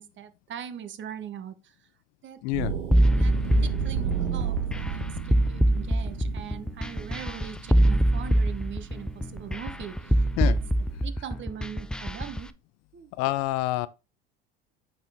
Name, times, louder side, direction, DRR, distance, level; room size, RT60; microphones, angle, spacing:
voice 1, 0.0-1.9 2.2-2.4 3.1-10.6 11.0-12.5 12.9-13.1, right 9 dB, 40° right, 1.1 m, -41 dB
voice 2, 2.4-2.7 10.4-10.6 13.2-13.9, left 18 dB, 60° left, 0.6 m, -26 dB
sound 1, 2.5-11.1, right 8 dB, 80° right, 1.7 m, -34 dB
sound 2, 2.9-12.4, right 1 dB, 5° left, 0.5 m, -24 dB
8.3 x 4.4 x 3.6 m
hypercardioid pair, 80°, 29 cm